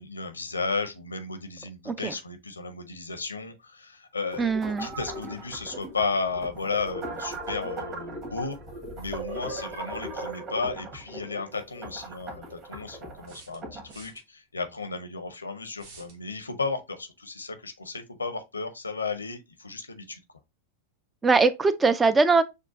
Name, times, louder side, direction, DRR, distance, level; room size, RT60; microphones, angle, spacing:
voice 1, 0.0-8.6 9.0-20.2, left 4 dB, 80° left, 0.7 m, -34 dB
sound 1, 4.3-13.9, right 2 dB, 35° right, 1.4 m, -38 dB
voice 2, 4.4-4.9 21.2-22.4, right 4 dB, 15° right, 0.4 m, -21 dB
sound 2, 13.2-14.2 15.8-16.2, right 4 dB, 50° right, 1.1 m, -50 dB
6.5 x 2.4 x 2.5 m
figure-of-eight pair, 90°, 0 cm